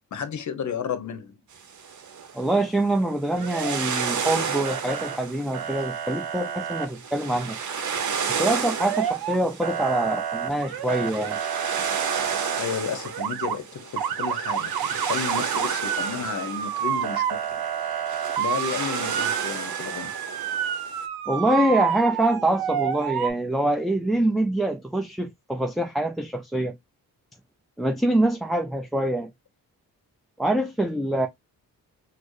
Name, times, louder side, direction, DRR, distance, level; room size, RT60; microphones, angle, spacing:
voice 1, 0.1-1.3 12.6-18.0 18.4-20.1, left 7 dB, 55° left, 0.7 m, -32 dB
sound 1, 1.6-21.1, right 6 dB, 55° right, 0.8 m, -32 dB
voice 2, 2.3-7.6 8.3-11.4 21.3-26.7 27.8-29.3 30.4-31.3, right 1 dB, ahead, 0.4 m, -25 dB
Motor vehicle (road) / Siren, 3.4-4.3 4.6-5.2 5.5-6.9 8.7-9.4 9.6-12.6 13.0-13.6 14.0-23.3, right 9 dB, 85° right, 0.6 m, -29 dB
4.2 x 2.0 x 3.0 m
cardioid pair, 80°, 36 cm